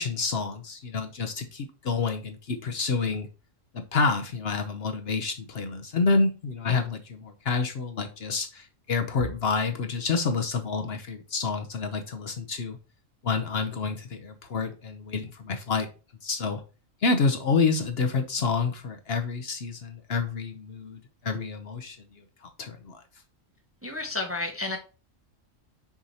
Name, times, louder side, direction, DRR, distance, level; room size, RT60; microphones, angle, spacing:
voice 1, 0.0-3.3 3.7-12.8 13.2-15.9 16.2-16.6 17.0-23.0, left 4 dB, 55° left, 6 dB, 0.9 m, -28 dB
voice 2, 23.8-24.8, left 3 dB, 15° right, 3 dB, 0.8 m, -31 dB
6.3 x 2.8 x 5.4 m, 0.33 s
omnidirectional pair, 1.3 m